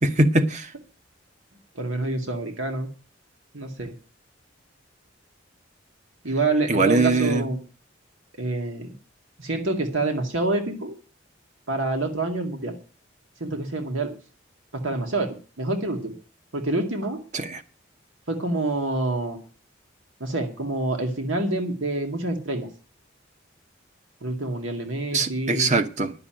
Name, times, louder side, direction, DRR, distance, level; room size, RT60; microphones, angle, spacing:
voice 1, 0.0-0.7 6.7-7.4 17.3-17.6 25.1-26.1, right 2 dB, 35° right, 1.0 m, -22 dB
voice 2, 1.8-2.9 3.5-3.9 6.2-7.6 8.4-8.9 9.4-11.0 11.7-12.7 13.4-14.1 14.7-16.1 16.5-17.2 18.3-19.4 20.2-22.7 24.2-25.7, right 2 dB, 85° right, 2.1 m, -27 dB
11.0 x 6.8 x 8.9 m
head